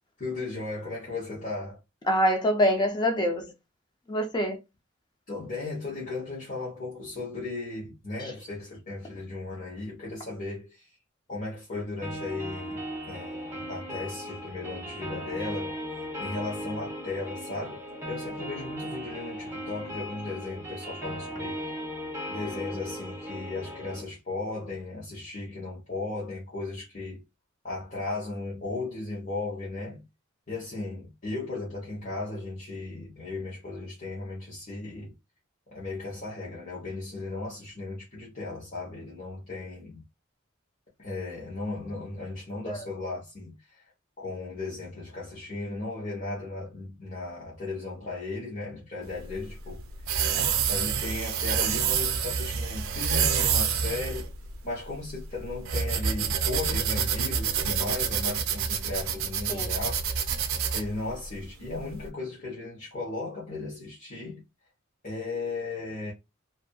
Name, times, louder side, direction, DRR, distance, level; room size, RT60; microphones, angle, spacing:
voice 1, 0.2-1.8 5.3-10.9 11.3-15.7 16.2-17.8 18.1-21.6 22.3-27.2 27.6-30.0 30.5-35.1 35.7-40.0 41.0-43.8 44.2-49.8 50.3-54.3 54.6-60.0 60.7-64.4 65.0-66.1, left 3 dB, 40° left, 0.9 m, -36 dB
voice 2, 2.1-3.5 4.1-4.6 42.7-42.8 59.5-59.7, equal, 20° left, 0.4 m, -25 dB
sound 1, 12.0-24.0, equal, 15° right, 0.9 m, -37 dB
sound 2, 49.1-62.0, right 6 dB, 80° right, 0.5 m, -28 dB
2.6 x 2.5 x 2.3 m
head